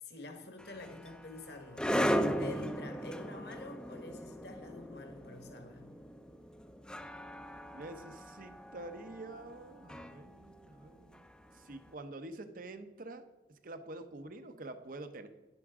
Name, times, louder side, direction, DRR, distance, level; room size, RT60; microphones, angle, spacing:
voice 1, 0.0-1.9 2.4-5.9, left 2 dB, 65° left, 4 dB, 1.5 m, -48 dB
sound 1, 0.6-11.7, equal, 5° left, 0.5 m, -37 dB
voice 2, 7.7-11.2 11.5-13.2 13.5-15.3, right 2 dB, 50° right, 9 dB, 0.8 m, -47 dB
11.0 x 10.0 x 3.7 m, 1.1 s
head